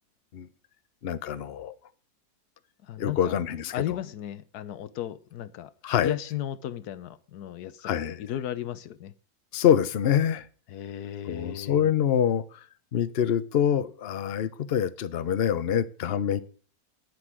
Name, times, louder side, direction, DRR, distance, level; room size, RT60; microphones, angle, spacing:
voice 1, 1.0-1.7 3.0-4.0 5.8-6.1 7.8-8.2 9.5-10.4 11.3-12.4 12.9-16.4, left 9 dB, 50° left, 0.8 m, -25 dB
voice 2, 2.9-3.3 3.7-5.7 6.0-7.9 8.2-9.1 10.7-11.9, left 11 dB, 80° left, 1.3 m, -35 dB
10.5 x 9.8 x 6.2 m
omnidirectional pair, 1.7 m